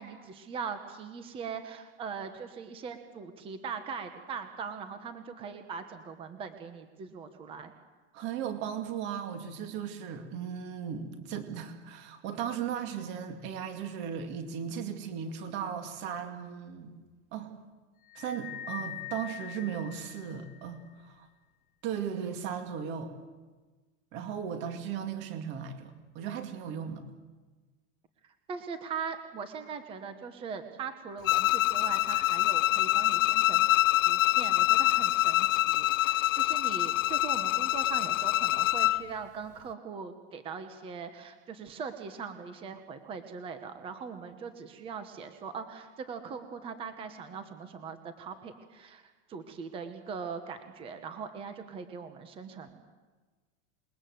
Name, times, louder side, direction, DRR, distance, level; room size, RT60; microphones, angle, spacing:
voice 1, 0.0-7.7 28.2-52.8, right 6 dB, 15° right, 8 dB, 1.2 m, -41 dB
voice 2, 8.1-16.9 17.3-17.5 18.1-21.3 21.8-23.1 24.1-27.1, right 8 dB, 30° right, 6 dB, 2.3 m, -36 dB
sound 1, 18.1-20.7, left 10 dB, 20° left, 1.2 m, -43 dB
Bowed string instrument, 31.2-39.0, left 16 dB, 90° left, 0.8 m, -25 dB
27.5 x 21.5 x 7.9 m, 1.3 s
supercardioid pair, 180°, 38 cm